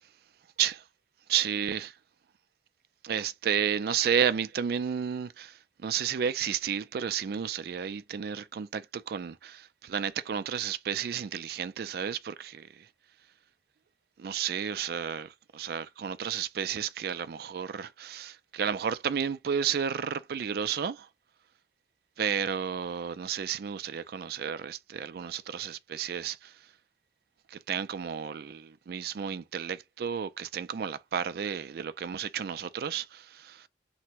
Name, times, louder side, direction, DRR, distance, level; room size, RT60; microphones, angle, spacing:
voice 1, 1.3-1.9 3.0-12.9 14.2-21.1 22.2-26.6 27.5-33.7, right 8 dB, 60° right, 0.3 m, -32 dB
3.3 x 2.1 x 2.8 m
head